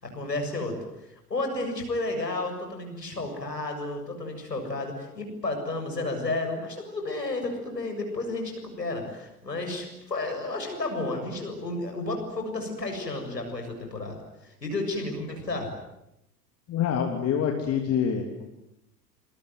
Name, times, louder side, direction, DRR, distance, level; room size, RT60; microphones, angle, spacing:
voice 1, 0.0-14.2 14.4-15.7, left 2 dB, 80° left, 4 dB, 7.3 m, -32 dB
voice 2, 16.7-18.5, left 8 dB, 30° left, 3 dB, 3.2 m, -26 dB
27.0 x 23.0 x 9.5 m, 0.85 s
figure-of-eight pair, 85°, 48 cm